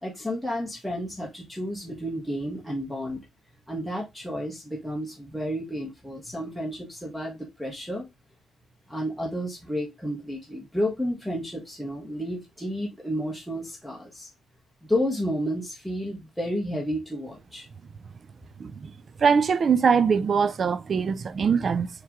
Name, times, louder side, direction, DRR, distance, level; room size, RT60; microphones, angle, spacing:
voice 1, 0.0-3.2 3.7-8.0 8.9-14.3 14.9-17.7, equal, ahead, 1.4 m, -31 dB
voice 2, 18.6-18.9 19.2-21.9, right 6 dB, 45° right, 0.4 m, -22 dB
4.5 x 3.1 x 3.5 m
cardioid pair, 90°, 0 cm